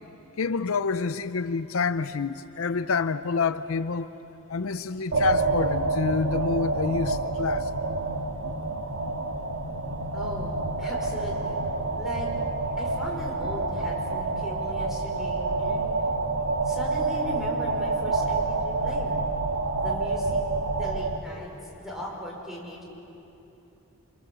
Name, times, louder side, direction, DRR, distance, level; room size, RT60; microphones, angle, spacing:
voice 1, 0.4-4.1 4.5-7.7, left 5 dB, 75° left, 0.6 m, -27 dB
sound 1, 5.1-21.2, right 3 dB, 85° right, 1.7 m, -28 dB
voice 2, 10.1-11.6 12.0-12.3 12.8-15.9 16.6-19.2 19.7-20.4 20.8-22.8, equal, ahead, 5.4 m, -38 dB
27.5 x 26.0 x 7.7 m
head